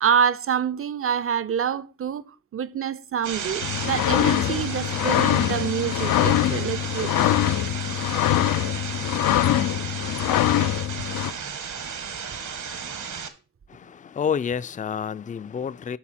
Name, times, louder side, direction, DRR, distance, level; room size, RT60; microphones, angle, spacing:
voice 1, 0.0-2.2 2.5-7.1, right 8 dB, 45° right, 0.6 m, -26 dB
sound 1, 3.2-13.3, right 6 dB, 65° right, 1.4 m, -34 dB
sound 2, 3.6-11.3, left 12 dB, 90° left, 0.5 m, -23 dB
voice 2, 13.7-16.0, left 7 dB, 25° left, 0.4 m, -29 dB
13.0 x 5.5 x 4.3 m
cardioid pair, 100°, 32 cm